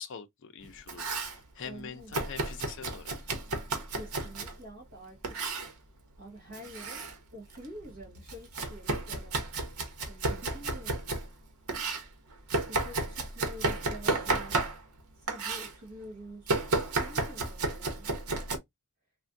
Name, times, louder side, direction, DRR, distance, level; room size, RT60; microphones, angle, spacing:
voice 1, 0.0-3.1, left 7 dB, 60° left, 0.5 m, -44 dB
Domestic sounds home sounds, 0.6-1.4 2.1-4.6 5.2-5.7 6.5-7.1 7.5-11.3 11.7-15.0 15.3-15.7 16.5-18.6, right 3 dB, 90° right, 0.9 m, -32 dB
voice 2, 1.6-2.1 3.9-5.6 6.2-7.0 7.3-9.4 10.1-11.1 12.7-16.6 17.0-18.1, right 1 dB, 60° right, 1.5 m, -47 dB
3.3 x 2.2 x 2.5 m
head